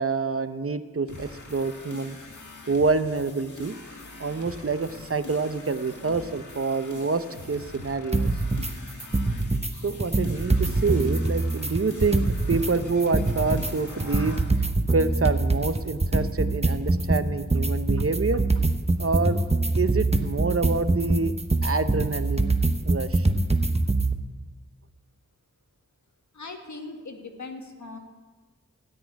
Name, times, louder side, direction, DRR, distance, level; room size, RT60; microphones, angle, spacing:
voice 1, 0.0-2.2 2.7-3.7 4.2-8.3 9.8-18.4 19.0-19.4 19.8-21.3 21.6-22.5 22.8-23.3, right 4 dB, 50° right, 11 dB, 0.8 m, -27 dB
sound 1, 1.1-14.6, left 3 dB, 85° left, 1.5 m, -43 dB
sound 2, 8.1-8.7 9.0-9.7 10.0-12.7 13.0-24.1, right 2 dB, 20° right, 0.9 m, -24 dB
voice 2, 26.3-28.0, left 3 dB, 70° left, 3 dB, 1.7 m, -39 dB
13.0 x 6.3 x 9.4 m, 1.4 s
wide cardioid pair, 45°, 30 cm